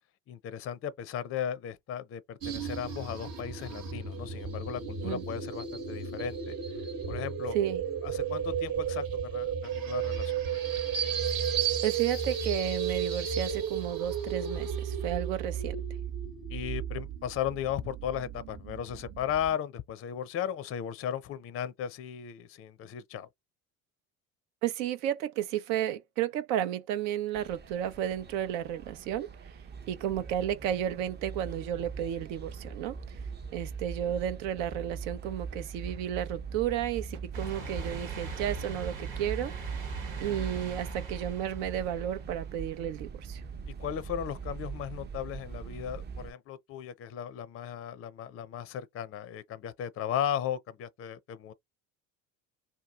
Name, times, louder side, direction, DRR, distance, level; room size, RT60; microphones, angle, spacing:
voice 1, 0.3-6.6 7.1-7.6 8.0-10.4 16.5-23.3 43.8-51.5, left 9 dB, 35° left, 0.5 m, -36 dB
sound 1, 2.4-19.5, right 7 dB, 55° right, 1.1 m, -34 dB
voice 2, 7.5-7.8 11.8-15.8 24.6-29.3 29.9-33.2 33.5-39.8 40.2-43.4, right 10 dB, 70° right, 0.7 m, -32 dB
sound 2, 27.3-46.3, right 5 dB, 25° right, 0.6 m, -41 dB
sound 3, 37.3-42.9 43.4-43.5 44.8-44.9, right 4 dB, 90° right, 1.3 m, -42 dB
2.8 x 2.2 x 3.5 m
hypercardioid pair, 70°, 41 cm